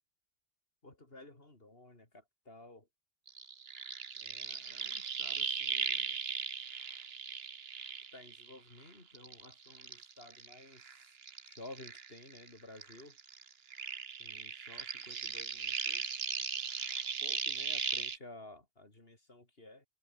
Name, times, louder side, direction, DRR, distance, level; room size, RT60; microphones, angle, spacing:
voice 1, 0.8-2.9 4.2-6.2 8.1-10.9 11.4-13.2 14.2-16.0 17.2-19.9, left 2 dB, 65° left, 4.5 m, -54 dB
sound 1, 3.3-8.8 9.1-12.5 12.8-18.2, right 6 dB, 70° right, 1.4 m, -38 dB
omnidirectional pair, 1.1 m